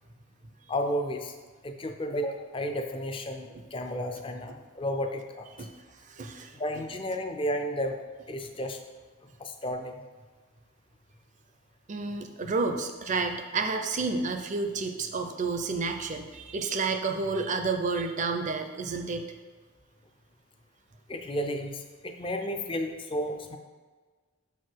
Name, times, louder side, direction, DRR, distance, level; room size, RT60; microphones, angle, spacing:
voice 1, 0.7-1.4 1.6-5.5 6.5-8.0 8.3-8.8 9.4-9.9 21.1-23.6, equal, 25° left, 5 dB, 0.5 m, -32 dB
voice 2, 6.1-6.5 11.9-19.3, right 4 dB, 35° right, 6 dB, 0.5 m, -30 dB
6.5 x 4.7 x 4.6 m, 1.4 s
head